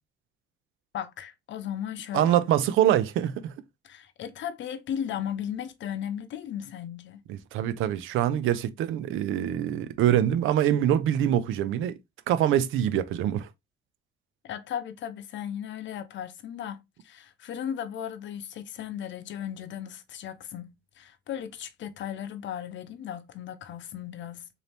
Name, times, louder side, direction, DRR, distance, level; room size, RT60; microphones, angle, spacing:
voice 1, 0.9-2.5 3.8-7.2 14.4-24.5, left 9 dB, 70° left, 0.7 m, -36 dB
voice 2, 2.1-3.5 7.3-12.0 12.3-13.5, right 11 dB, 85° right, 0.5 m, -24 dB
4.1 x 2.7 x 3.4 m
cardioid pair, 90°, 20 cm